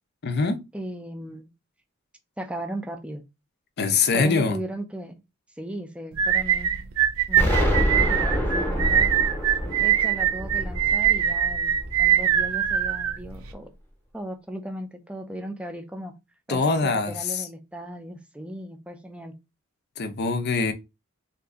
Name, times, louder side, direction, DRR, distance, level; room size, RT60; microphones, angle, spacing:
voice 1, 0.2-0.6 3.8-4.6 16.5-17.5 20.0-20.7, left 4 dB, 50° left, 0.6 m, -23 dB
voice 2, 0.7-1.5 2.4-3.2 4.1-5.1 5.6-6.7 7.3-9.1 9.8-11.7 12.0-13.7 14.1-16.1 16.5-19.3, right 1 dB, 5° right, 0.4 m, -36 dB
sound 1, 6.2-13.5, right 10 dB, 90° right, 0.5 m, -23 dB
Explosion, 7.3-12.2, equal, 10° left, 0.8 m, -26 dB
2.8 x 2.5 x 3.5 m
head